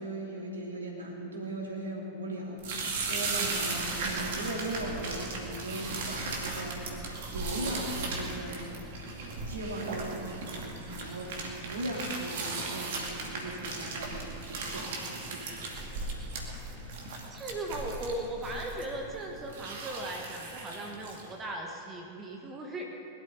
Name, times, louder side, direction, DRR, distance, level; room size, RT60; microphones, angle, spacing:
voice 1, 0.0-8.7 9.5-15.7, right 1 dB, 70° right, -1 dB, 2.7 m, -38 dB
sound 1, 2.6-21.3, right 3 dB, 55° right, 2.3 m, -37 dB
voice 2, 17.3-22.9, right 1 dB, 20° right, 0 dB, 1.6 m, -38 dB
21.5 x 12.5 x 4.0 m, 2.8 s
figure-of-eight pair, 90°, 0 cm